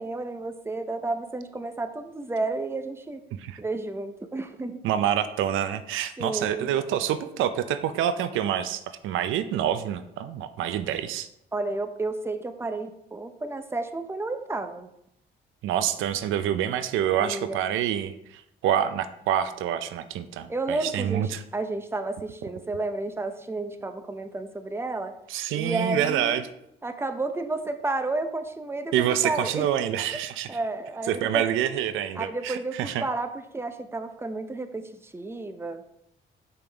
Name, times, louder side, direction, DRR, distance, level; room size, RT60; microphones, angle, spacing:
voice 1, 0.0-3.2 3.6-4.8 6.2-6.7 11.5-14.9 17.2-17.6 20.5-25.1 25.5-26.4 26.8-29.7 30.5-31.5 32.2-35.8, right 2 dB, 10° right, 8 dB, 0.6 m, -31 dB
voice 2, 4.8-11.3 15.6-21.4 25.3-26.4 28.9-30.6 31.1-33.0, right 10 dB, 85° right, 12 dB, 0.5 m, -27 dB
6.7 x 5.3 x 3.4 m, 0.78 s
cardioid pair, 90°, 20 cm